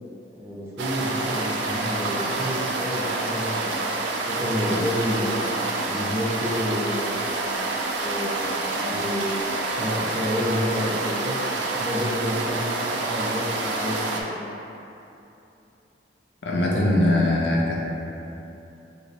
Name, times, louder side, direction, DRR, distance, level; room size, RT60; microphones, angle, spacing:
voice 1, 0.3-4.0 4.3-5.4 5.8-7.4 7.9-9.4 9.8-11.4 11.8-12.7 13.0-14.4, equal, 15° right, -7 dB, 0.6 m, -29 dB
sound 1, 0.8-14.2, right 2 dB, 85° right, 0.4 m, -28 dB
voice 2, 16.4-17.8, left 1 dB, 75° left, -2 dB, 0.6 m, -21 dB
4.6 x 3.1 x 2.7 m, 2.8 s
head